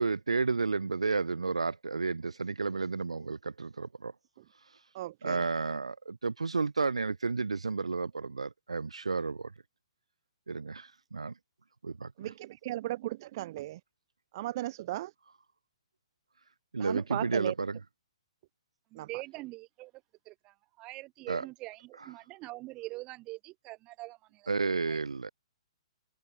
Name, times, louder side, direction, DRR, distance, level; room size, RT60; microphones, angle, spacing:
voice 1, 0.0-4.1 5.2-9.5 10.5-11.3 11.8-12.3 16.7-17.8 21.3-21.5 22.0-22.1 24.5-25.3, right 4 dB, 80° right, 0.4 m, -32 dB
voice 2, 4.9-5.4 12.2-13.8 14.3-15.1 16.8-17.5 18.9-19.1, right 15 dB, 45° right, 0.9 m, -36 dB
voice 3, 18.9-19.9 20.3-25.0, right 20 dB, 30° right, 2.1 m, -44 dB
figure-of-eight pair, 120°, 3 cm